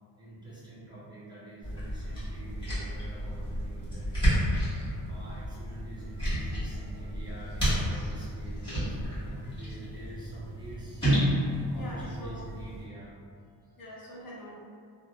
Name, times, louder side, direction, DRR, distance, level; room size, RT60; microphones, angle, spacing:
voice 1, 0.2-4.4 5.1-11.0 11.7-13.2 13.6-13.8, right 1 dB, 10° right, -10 dB, 0.5 m, -47 dB
sound 1, 1.6-12.8, equal, 10° left, 1.2 m, -31 dB
voice 2, 11.5-12.5 13.8-14.6, left 1 dB, 50° left, -4 dB, 0.5 m, -44 dB
2.8 x 2.2 x 2.3 m, 2.1 s
cardioid pair, 140°, 44 cm